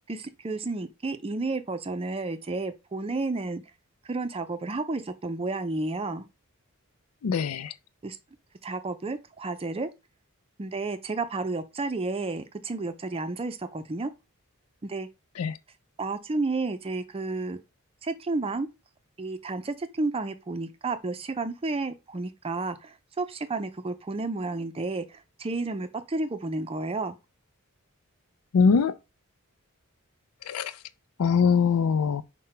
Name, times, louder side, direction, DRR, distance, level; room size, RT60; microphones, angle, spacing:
voice 1, 0.1-3.6 4.1-6.3 8.0-8.2 8.6-9.9 10.6-14.1 14.8-15.1 16.0-17.6 18.0-18.7 19.2-27.1, right 3 dB, 25° right, 0.5 m, -31 dB
voice 2, 7.2-7.7 15.4-15.6 28.5-28.9 30.5-30.7 31.2-32.2, left 5 dB, 80° left, 0.4 m, -22 dB
5.6 x 2.2 x 4.3 m
head